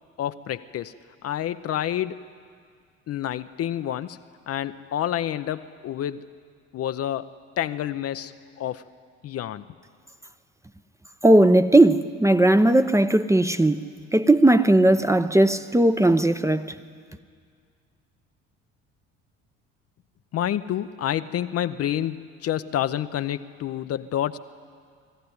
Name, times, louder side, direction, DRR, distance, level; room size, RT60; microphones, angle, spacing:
voice 1, 0.2-0.9 1.2-2.2 3.1-4.2 4.5-6.3 6.7-8.8 9.2-9.6 20.3-24.4, left 11 dB, 40° left, 0.6 m, -28 dB
voice 2, 11.2-13.9 14.1-16.7, right 1 dB, 10° right, 0.7 m, -18 dB
20.5 x 14.5 x 9.6 m
hypercardioid pair, 60°, 38 cm